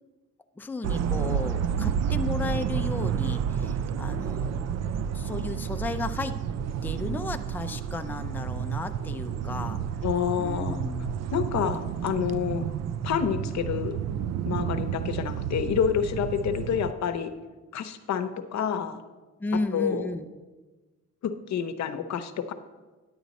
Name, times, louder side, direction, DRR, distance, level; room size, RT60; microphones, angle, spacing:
voice 1, 0.6-6.4 6.8-9.8 10.4-11.1 19.4-20.3, left 3 dB, 5° left, 6 dB, 0.5 m, -34 dB
sound 1, 0.8-16.9, right 8 dB, 60° right, 0.5 m, -30 dB
voice 2, 10.0-10.8 11.3-12.7 13.0-14.0 14.4-17.3 17.7-19.0 19.7-20.1 21.2-22.5, left 8 dB, 65° left, 9 dB, 0.8 m, -28 dB
10.0 x 8.0 x 4.1 m, 1.2 s
cardioid pair, 90°, 30 cm